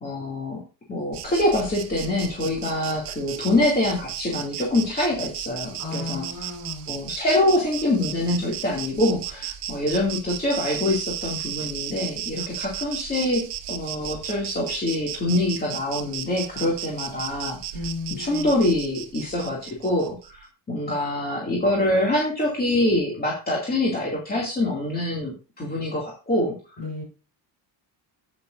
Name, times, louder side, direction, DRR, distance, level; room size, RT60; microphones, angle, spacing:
voice 1, 0.0-0.6 0.9-6.5 6.9-17.6 18.1-26.6, left 1 dB, 20° left, -3 dB, 2.3 m, -25 dB
Insect, 1.1-20.3, right 12 dB, 70° right, 1.1 m, -35 dB
voice 2, 5.8-6.9 17.7-18.5 26.8-27.0, left 3 dB, 40° left, 2 dB, 4.7 m, -34 dB
10.5 x 9.1 x 2.5 m, 0.32 s
cardioid pair, 130°, 43 cm